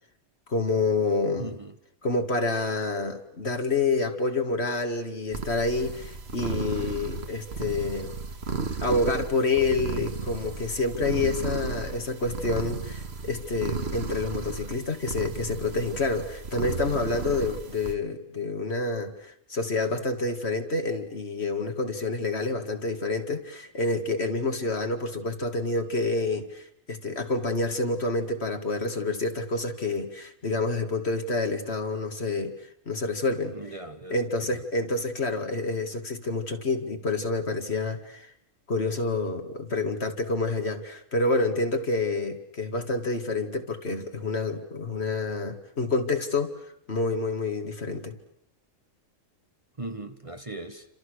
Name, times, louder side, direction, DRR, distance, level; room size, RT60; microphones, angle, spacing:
voice 1, 0.5-1.5 2.0-8.2 8.8-32.5 32.9-33.6 34.1-38.3 38.7-46.6 46.9-48.2, left 3 dB, 55° left, 2.5 m, -28 dB
voice 2, 1.4-1.7 33.5-34.6 42.2-42.3 49.8-50.9, right 2 dB, 25° right, 1.3 m, -39 dB
sound 1, 5.3-17.9, right 4 dB, 55° right, 1.9 m, -34 dB
30.0 x 27.0 x 6.5 m
omnidirectional pair, 1.3 m